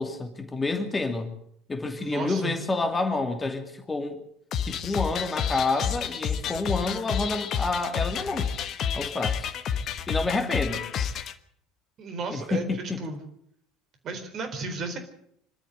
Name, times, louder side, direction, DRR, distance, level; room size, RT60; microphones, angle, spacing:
voice 1, 0.0-1.3 1.7-4.2 4.7-8.5 8.9-9.5 10.1-11.2 12.3-13.0, left 3 dB, 20° left, 6 dB, 2.5 m, -29 dB
voice 2, 2.0-2.6 12.0-13.2 14.0-15.0, right 3 dB, 40° right, 7 dB, 4.2 m, -34 dB
sound 1, 4.5-11.3, left 7 dB, 45° left, 1.2 m, -30 dB
26.0 x 12.5 x 8.0 m, 0.70 s
figure-of-eight pair, 65°, 0 cm